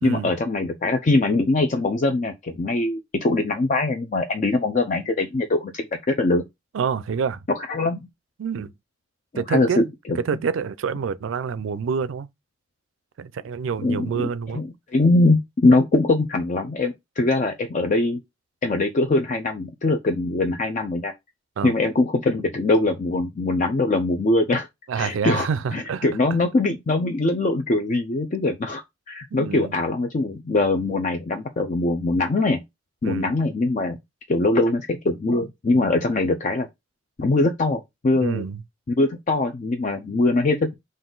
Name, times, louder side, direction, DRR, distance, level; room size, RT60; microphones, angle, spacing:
voice 1, 0.0-6.4 7.5-8.0 9.3-10.2 13.8-14.1 14.5-18.2 18.6-21.1 21.6-24.7 25.0-32.6 33.0-34.0 34.3-36.7 37.2-38.4 38.9-40.7, left 2 dB, 40° left, 0.4 m, -22 dB
voice 2, 6.7-7.4 8.4-8.7 9.3-9.8 10.1-12.3 13.2-14.6 21.6-21.7 24.9-26.1 29.3-29.8 33.0-33.3 38.1-38.6, right 6 dB, 85° right, 0.4 m, -27 dB
3.8 x 2.6 x 3.8 m
head